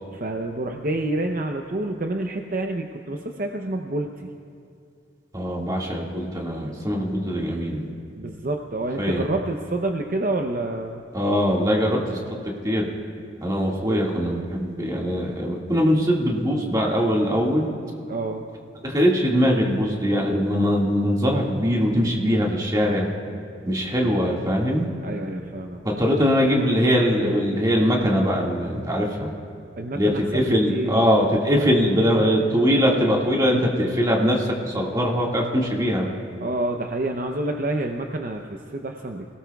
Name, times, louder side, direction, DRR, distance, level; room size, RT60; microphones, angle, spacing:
voice 1, 0.1-4.3 8.2-11.0 13.9-14.0 18.1-18.5 25.0-25.8 29.8-31.3 36.4-39.4, right 2 dB, 45° right, 3 dB, 0.6 m, -28 dB
voice 2, 5.3-7.9 9.0-9.3 11.1-12.2 12.6-12.9 13.4-17.7 18.8-23.1 23.7-24.9 25.8-29.3 29.9-36.1, equal, 20° right, -2 dB, 1.8 m, -22 dB
25.5 x 17.5 x 2.3 m, 2.5 s
head